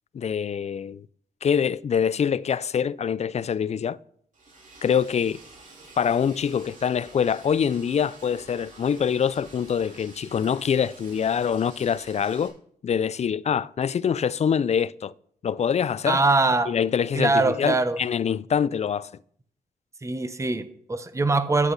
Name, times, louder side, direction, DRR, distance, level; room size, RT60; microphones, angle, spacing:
voice 1, 0.1-1.1 1.4-4.0 4.8-5.4 6.0-12.5 12.8-15.1 15.4-16.2 16.7-19.1, left 7 dB, 45° left, 0.4 m, -25 dB
Liquid, 4.3-12.5, right 2 dB, 55° right, 3.9 m, -48 dB
voice 2, 16.1-16.7 17.2-18.0 20.0-21.7, right 3 dB, 20° right, 0.9 m, -22 dB
13.5 x 9.9 x 4.0 m
cardioid pair, 85°, 16 cm